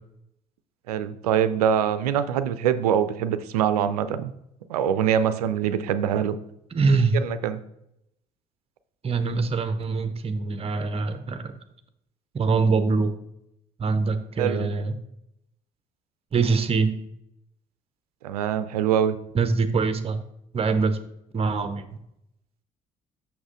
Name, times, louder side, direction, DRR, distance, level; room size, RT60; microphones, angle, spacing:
voice 1, 0.9-4.3 4.7-6.4 7.1-7.6 14.4-14.7 18.2-19.2, right 9 dB, 80° right, 12 dB, 0.5 m, -24 dB
voice 2, 6.7-7.3 9.0-11.5 12.3-13.1 13.8-14.9 16.3-16.9 19.3-20.2 20.5-21.0 21.3-21.8, right 4 dB, 30° right, 10 dB, 0.8 m, -23 dB
6.3 x 5.9 x 3.6 m, 0.79 s
figure-of-eight pair, 55°, 19 cm